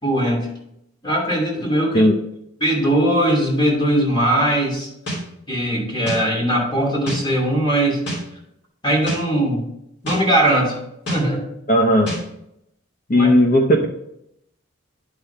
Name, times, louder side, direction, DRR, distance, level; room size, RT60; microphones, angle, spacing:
voice 1, 0.0-0.5 1.0-2.1 2.6-4.9 5.5-8.0 8.8-9.6 10.0-10.8 11.1-11.4 13.1-13.3, right 1 dB, 25° left, -2 dB, 2.7 m, -20 dB
sound 1, 5.1-5.2 6.1-6.2 7.1-7.2 8.1-8.2 9.1-9.2 10.1-10.2 11.1-11.2 12.1-12.2, equal, 55° left, 2.9 m, -26 dB
voice 2, 11.7-12.1 13.1-13.9, equal, 40° left, 3 dB, 0.8 m, -15 dB
10.0 x 5.7 x 3.4 m, 0.79 s
head